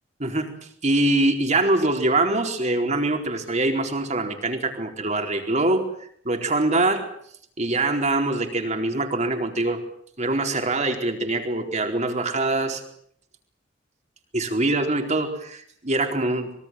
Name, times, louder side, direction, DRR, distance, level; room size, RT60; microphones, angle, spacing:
voice 1, 0.2-0.5 0.8-5.9 6.2-7.1 7.6-9.9 10.2-12.8 14.3-16.5, right 2 dB, 40° right, 5 dB, 4.4 m, -23 dB
25.5 x 23.0 x 7.7 m, 0.66 s
head